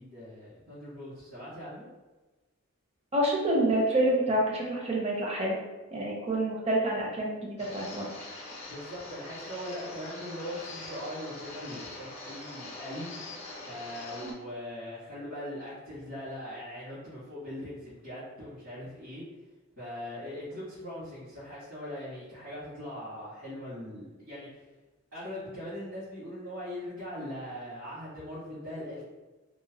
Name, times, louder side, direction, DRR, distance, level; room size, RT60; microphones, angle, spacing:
voice 1, 0.0-1.9 8.6-13.1 13.6-19.2 19.8-24.6 25.1-29.0, left 1 dB, 65° right, -14 dB, 1.5 m, -40 dB
voice 2, 3.1-5.6 5.9-8.1 14.2-14.3, right 1 dB, 30° right, -3 dB, 0.6 m, -27 dB
sound 1, 7.6-14.3, left 2 dB, 30° left, 0.4 m, -43 dB
2.9 x 2.1 x 2.8 m, 1.2 s
head